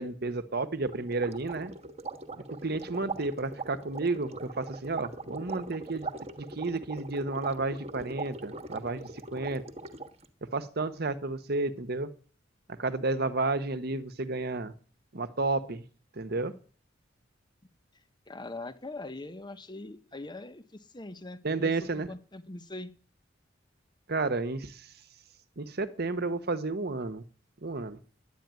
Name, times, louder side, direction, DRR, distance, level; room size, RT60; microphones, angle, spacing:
voice 1, 0.0-1.7 2.4-6.1 6.4-9.6 10.5-12.1 12.8-14.7 15.1-15.8 16.2-16.5 21.4-22.1 24.1-24.9 25.6-27.2 27.6-28.0, right 3 dB, 55° right, 12 dB, 1.1 m, -31 dB
sound 1, 0.8-10.3, right 3 dB, 35° right, 1.3 m, -41 dB
voice 2, 18.3-22.9, left 2 dB, 25° left, 11 dB, 1.0 m, -42 dB
11.0 x 9.1 x 9.4 m, 0.42 s
head